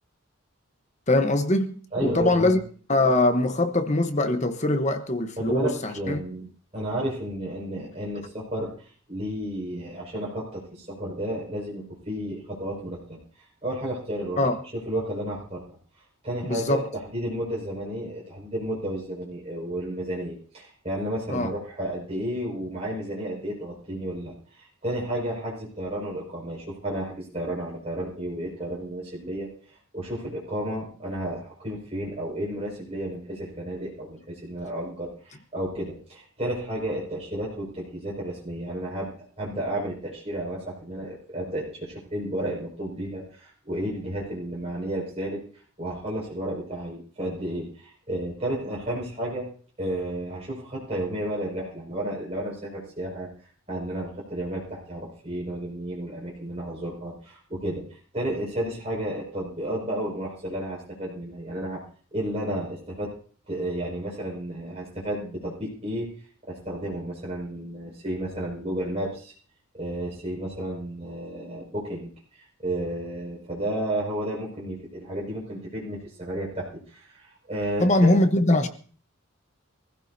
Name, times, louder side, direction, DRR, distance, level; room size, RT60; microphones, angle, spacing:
voice 1, 1.1-2.6 2.9-6.2 14.4-14.6 16.4-16.9 21.3-21.5 77.8-78.7, left 2 dB, 35° left, 1.1 m, -22 dB
voice 2, 1.9-2.6 5.4-6.5 6.7-8.7 9.1-13.2 13.6-14.4 14.7-15.6 16.2-29.5 29.9-39.1 39.4-45.4 45.8-49.5 49.8-53.3 53.7-61.8 62.1-63.1 63.5-66.1 66.5-69.3 69.7-72.1 72.4-78.1, right 1 dB, 30° right, 5.8 m, -32 dB
24.5 x 15.0 x 2.8 m
head